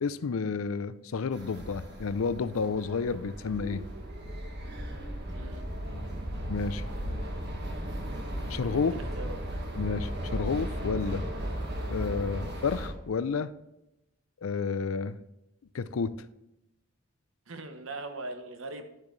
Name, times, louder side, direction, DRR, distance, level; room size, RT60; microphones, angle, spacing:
voice 1, 0.0-3.8 6.5-6.8 8.5-8.9 9.8-11.2 11.9-13.5 14.4-15.2 15.7-16.1, left 5 dB, 80° left, 15 dB, 0.5 m, -30 dB
sound 1, 1.3-12.9, equal, 55° right, 1.6 m, -36 dB
voice 2, 5.3-5.6 8.8-9.5 17.5-18.8, right 2 dB, 70° right, 7 dB, 1.0 m, -40 dB
12.0 x 7.4 x 3.2 m, 0.92 s
head